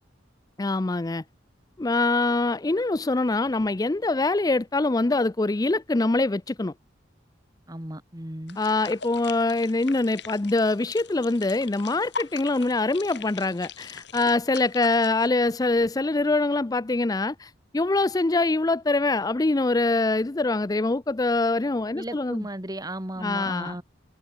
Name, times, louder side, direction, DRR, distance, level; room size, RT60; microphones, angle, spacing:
voice 1, 0.6-1.2 1.8-6.7 8.6-22.4 23.2-23.8, left 2 dB, 20° left, 0.4 m, -24 dB
voice 2, 7.7-8.6 21.9-23.8, right 1 dB, 20° right, 2.5 m, -35 dB
sound 1, 8.5-15.3, left 5 dB, 60° left, 5.5 m, -41 dB
head